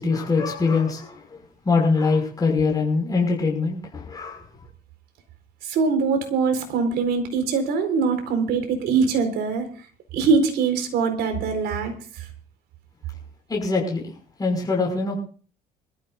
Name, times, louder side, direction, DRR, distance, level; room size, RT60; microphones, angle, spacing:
voice 1, 0.0-1.4 1.7-4.4 13.5-14.1 14.4-15.2, left 4 dB, 20° left, -1 dB, 5.7 m, -23 dB
voice 2, 5.6-9.7 10.1-12.3, right 5 dB, 80° right, 6 dB, 4.3 m, -23 dB
26.0 x 14.0 x 2.6 m, 0.42 s
cardioid pair, 110°, 17 cm